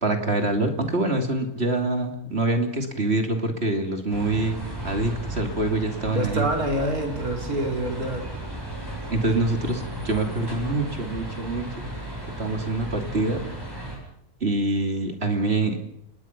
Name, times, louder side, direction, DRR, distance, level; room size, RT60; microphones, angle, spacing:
voice 1, 0.0-4.6 4.8-6.5 9.1-11.9 12.4-13.4 14.4-15.8, right 2 dB, 45° right, 5 dB, 3.0 m, -25 dB
sound 1, 4.1-14.0, right 1 dB, 15° right, 7.9 m, -35 dB
voice 2, 6.1-8.2, right 1 dB, 70° right, 2 dB, 4.8 m, -26 dB
29.5 x 20.0 x 6.0 m, 0.69 s
omnidirectional pair, 1.6 m